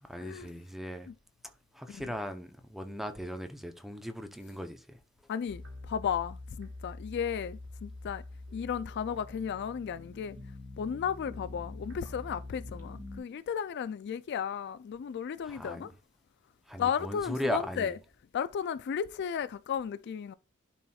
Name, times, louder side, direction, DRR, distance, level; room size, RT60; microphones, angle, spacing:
voice 1, 0.0-1.1 1.7-5.0 15.4-15.9 16.7-17.9, equal, ahead, 0.7 m, -38 dB
voice 2, 5.3-8.2 8.5-10.4 10.8-15.9 16.8-18.0 18.3-20.3, left 7 dB, 50° left, 0.3 m, -34 dB
sound 1, 5.5-13.2, left 2 dB, 65° right, 3.0 m, -45 dB
11.0 x 4.3 x 2.3 m
head